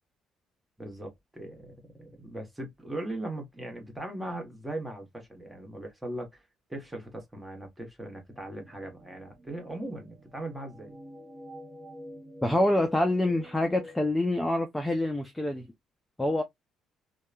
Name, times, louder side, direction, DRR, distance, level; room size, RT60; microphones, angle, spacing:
voice 1, 0.8-6.4 6.7-11.0, right 1 dB, 5° right, 1.1 m, -39 dB
sound 1, 8.3-14.1, equal, 30° right, 1.2 m, -48 dB
voice 2, 12.4-15.7 16.2-16.4, left 1 dB, 10° left, 0.4 m, -26 dB
2.8 x 2.2 x 2.3 m
cardioid pair, 120°, 0 cm